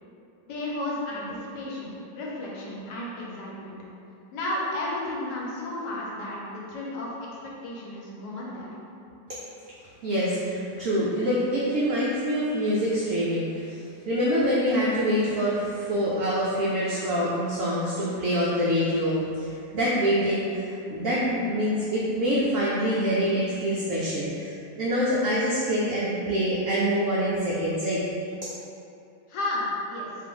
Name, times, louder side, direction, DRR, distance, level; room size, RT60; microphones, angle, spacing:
voice 1, 0.4-3.7 4.3-8.7 29.3-30.1, left 1 dB, 75° left, -4 dB, 1.1 m, -33 dB
voice 2, 10.0-13.7 14.1-19.5 19.7-28.0, equal, 85° right, -7 dB, 0.7 m, -25 dB
2.6 x 2.5 x 3.7 m, 2.6 s
omnidirectional pair, 1.9 m